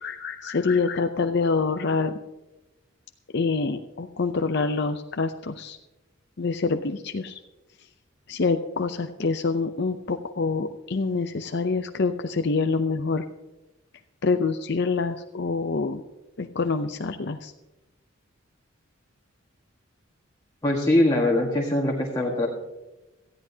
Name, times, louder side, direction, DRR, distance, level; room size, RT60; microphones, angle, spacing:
voice 1, 0.0-2.2 3.3-5.8 6.4-7.4 8.3-13.2 14.2-16.0 16.4-17.5, left 4 dB, 55° left, 6 dB, 0.6 m, -26 dB
voice 2, 20.6-22.5, left 1 dB, 20° left, -2 dB, 1.7 m, -22 dB
18.0 x 14.0 x 2.8 m, 1.0 s
head